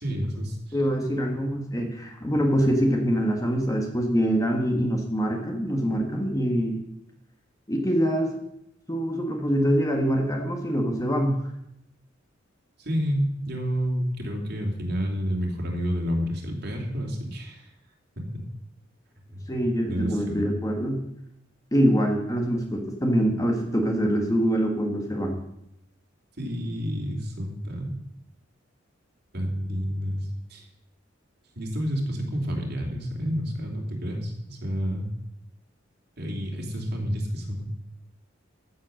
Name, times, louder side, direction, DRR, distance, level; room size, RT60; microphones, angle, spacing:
voice 1, 0.0-0.8 12.8-17.7 18.2-18.3 19.3-19.6 19.9-20.6 26.4-27.9 29.3-30.7 31.6-35.1 36.2-37.7, equal, 55° right, 1 dB, 2.9 m, -29 dB
voice 2, 0.7-6.8 7.7-8.3 8.9-11.4 19.5-21.0 21.7-25.4, equal, 20° left, 2 dB, 1.7 m, -24 dB
14.5 x 7.6 x 6.4 m, 0.80 s
head